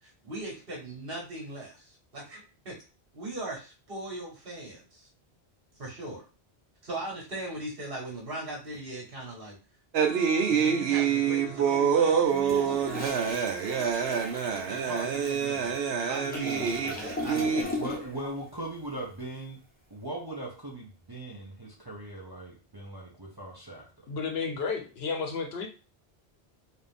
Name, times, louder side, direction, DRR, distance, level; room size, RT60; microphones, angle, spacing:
voice 1, 0.0-2.7 3.1-5.1 5.8-6.2 6.8-9.6 10.4-13.1 14.5-17.8, right 2 dB, 60° right, -2 dB, 1.7 m, -39 dB
sound 1, 9.9-17.6, right 7 dB, 75° right, 0.9 m, -26 dB
Toilet flush, 12.3-18.3 18.5-18.8, left 1 dB, 10° left, 0.8 m, -38 dB
voice 2, 17.8-19.6 19.9-23.9, right 1 dB, 25° right, -3 dB, 0.8 m, -39 dB
voice 3, 24.1-25.7, left 5 dB, 70° left, 4 dB, 1.1 m, -32 dB
4.1 x 2.6 x 3.5 m, 0.33 s
omnidirectional pair, 1.1 m